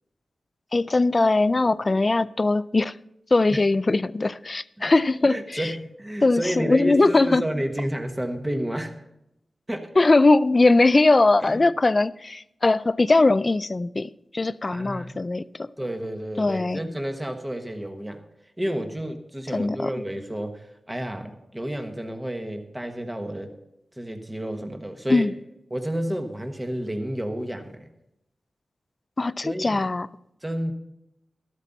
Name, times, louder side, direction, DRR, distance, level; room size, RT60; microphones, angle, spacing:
voice 1, 0.7-2.9 3.3-5.7 6.2-7.4 10.0-15.7 16.4-16.8 19.5-19.9 25.1-25.3 29.2-30.1, left 2 dB, 30° left, 0.4 m, -20 dB
voice 2, 5.3-9.0 9.7-9.9 11.4-11.6 14.7-15.2 15.8-18.2 18.6-23.5 24.0-25.3 25.7-27.9 29.4-29.8 30.4-30.7, right 1 dB, 10° right, 1.3 m, -31 dB
13.5 x 12.5 x 4.0 m
wide cardioid pair, 110°, 0 cm